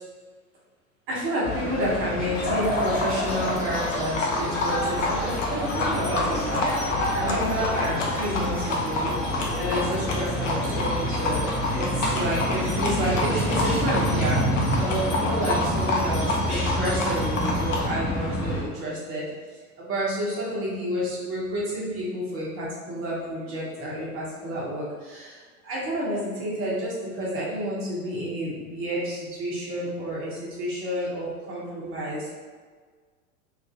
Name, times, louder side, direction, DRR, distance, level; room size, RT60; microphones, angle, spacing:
voice 1, 1.1-9.1 9.5-14.4 14.8-19.2 19.8-32.5, equal, 30° right, -6 dB, 0.9 m, -30 dB
sound 1, 1.4-18.6, equal, 35° left, 1.3 m, -28 dB
Livestock farm animals working animals, 2.3-17.9, left 2 dB, 55° left, 0.8 m, -29 dB
3.1 x 2.6 x 3.6 m, 1.5 s
figure-of-eight pair, 90°, 45 cm